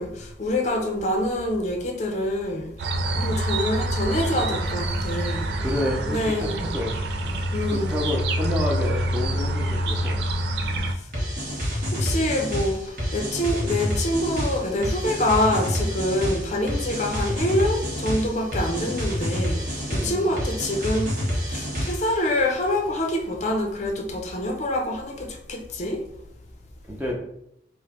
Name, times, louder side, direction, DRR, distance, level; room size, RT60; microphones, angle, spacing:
voice 1, 0.0-2.7 3.1-5.6 6.1-6.7 7.5-8.0 11.9-21.1 21.5-26.0, left 1 dB, 40° left, 2 dB, 0.5 m, -26 dB
sound 1, 2.8-10.9, right 1 dB, 65° right, 0.4 m, -26 dB
voice 2, 5.6-6.5 6.7-6.9 7.2-7.4 7.7-10.2 10.6-10.8 16.3-16.5 18.8-19.0 19.9-20.3 26.9-27.2, left 1 dB, 10° right, -1 dB, 0.5 m, -30 dB
sound 2, 11.1-22.2, equal, 50° right, 1.1 m, -28 dB
4.9 x 2.1 x 2.9 m, 0.79 s
head